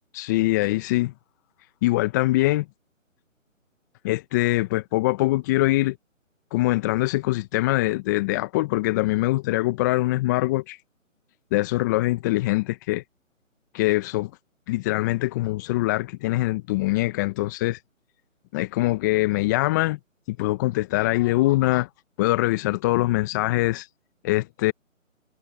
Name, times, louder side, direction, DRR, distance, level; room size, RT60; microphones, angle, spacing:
voice 1, 0.1-1.1 1.8-2.7 4.0-6.0 6.5-10.8 11.5-13.0 13.7-14.3 14.7-17.8 18.5-20.0 20.3-21.9 22.2-23.9 24.2-24.7, left 19 dB, 15° left, 1.1 m, -23 dB
figure-of-eight pair, 145°, 40 cm